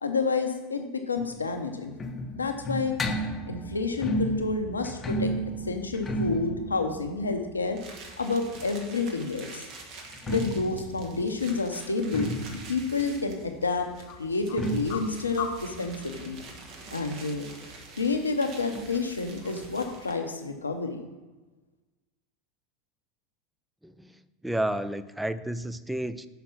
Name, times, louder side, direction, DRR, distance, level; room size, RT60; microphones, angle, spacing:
voice 1, 0.0-2.0 2.3-3.0 3.5-5.3 5.7-7.8 8.2-9.6 10.3-12.3 12.7-13.9 14.2-16.4 16.9-17.5 18.0-21.0, left 4 dB, 85° left, 6 dB, 0.8 m, -29 dB
sound 1, 1.2-8.9 10.0-17.4 17.6-17.7 18.0-18.1 18.7-18.8, right 1 dB, 20° left, 0.8 m, -34 dB
sound 2, 7.7-20.3, right 3 dB, 50° right, 1.4 m, -47 dB
sound 3, 10.0-20.9, left 7 dB, 50° left, 0.9 m, -46 dB
voice 2, 23.8-26.3, right 1 dB, 5° right, 13 dB, 0.4 m, -31 dB
5.8 x 5.1 x 5.9 m, 1.2 s
figure-of-eight pair, 80°, 0 cm